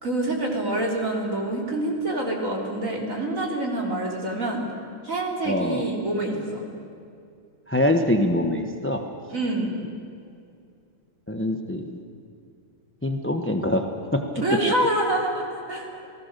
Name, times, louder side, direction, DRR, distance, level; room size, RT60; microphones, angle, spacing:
voice 1, 0.0-4.7 5.0-6.6 9.3-9.7 14.4-15.9, right 1 dB, 40° right, -1 dB, 3.8 m, -26 dB
voice 2, 5.4-5.8 7.7-9.0 11.3-12.0 13.0-13.8 14.1-14.2, left 1 dB, 10° left, 5 dB, 0.7 m, -24 dB
28.0 x 18.5 x 6.8 m, 2.5 s
omnidirectional pair, 2.3 m